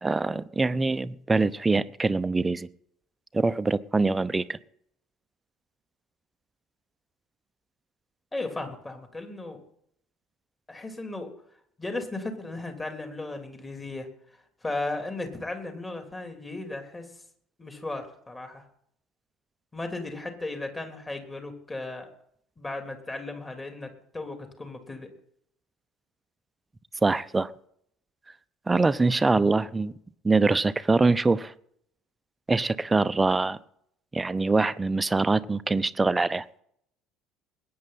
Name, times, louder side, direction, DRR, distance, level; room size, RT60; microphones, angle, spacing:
voice 1, 0.0-2.7 3.3-4.6 27.0-27.5 28.7-29.9 30.2-31.5 32.5-33.6 34.1-36.5, right 3 dB, 20° right, 15 dB, 0.7 m, -24 dB
voice 2, 8.3-9.6 10.7-11.3 11.8-14.1 14.6-17.1 17.6-18.6 19.7-22.1 22.6-25.1, left 2 dB, 20° left, 4 dB, 3.3 m, -35 dB
21.0 x 9.5 x 4.2 m, 0.69 s
figure-of-eight pair, 60°, 0 cm